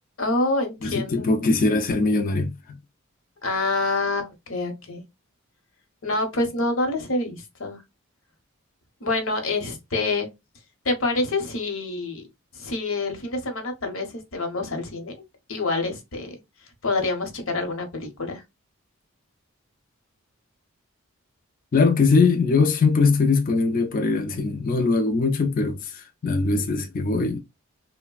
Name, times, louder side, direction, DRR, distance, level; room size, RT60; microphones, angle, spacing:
voice 1, 0.2-1.3 3.4-5.0 6.0-7.8 9.0-10.3 10.8-12.3 12.5-15.2 15.5-16.4 16.8-18.4, left 2 dB, 65° left, 0.9 m, -27 dB
voice 2, 0.8-2.8 21.7-27.4, left 4 dB, 40° left, 0.4 m, -21 dB
3.2 x 2.1 x 2.2 m
head